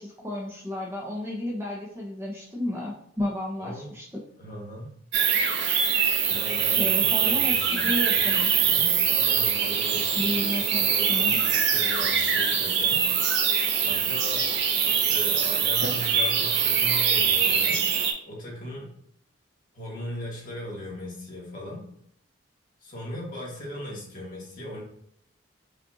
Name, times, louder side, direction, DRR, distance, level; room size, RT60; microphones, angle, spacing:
voice 1, 0.0-4.2 6.8-7.6 7.8-8.8 10.2-11.4, left 1 dB, 15° right, -4 dB, 0.7 m, -32 dB
voice 2, 3.6-3.9 4.4-4.9 6.3-8.3 8.6-11.4 11.7-13.1 13.8-14.5 14.8-17.9 18.3-18.9 19.7-21.9 22.8-24.8, left 1 dB, 40° left, -5 dB, 1.4 m, -38 dB
sound 1, 5.1-18.1, right 7 dB, 55° right, 0.6 m, -23 dB
5.2 x 2.5 x 2.7 m, 0.70 s
head